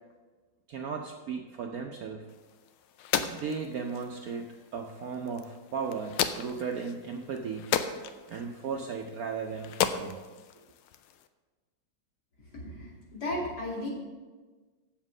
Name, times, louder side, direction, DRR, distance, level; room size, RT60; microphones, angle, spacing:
voice 1, 0.7-2.2 3.2-7.7 8.3-10.2, right 5 dB, 80° right, 2 dB, 0.8 m, -36 dB
sound 1, 2.3-11.3, left 9 dB, 85° left, 1.5 m, -36 dB
voice 2, 12.5-13.9, left 1 dB, 50° left, -4 dB, 3.1 m, -35 dB
7.5 x 7.3 x 6.0 m, 1.3 s
omnidirectional pair, 2.3 m